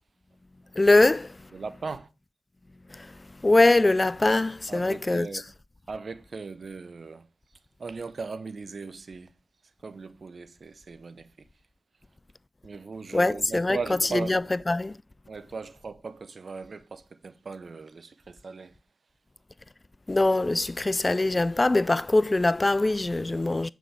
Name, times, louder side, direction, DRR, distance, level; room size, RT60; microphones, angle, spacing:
voice 1, 0.8-1.3 3.4-5.3 13.1-13.8 14.1-14.4 14.7-14.9 20.1-23.7, left 2 dB, 35° left, 0.3 m, -22 dB
voice 2, 1.5-2.1 4.7-5.4 5.9-7.3 7.8-9.3 9.8-11.3 12.6-14.4 15.3-18.8, right 4 dB, 65° right, 0.6 m, -38 dB
7.2 x 6.1 x 3.2 m
cardioid pair, 40°, 0 cm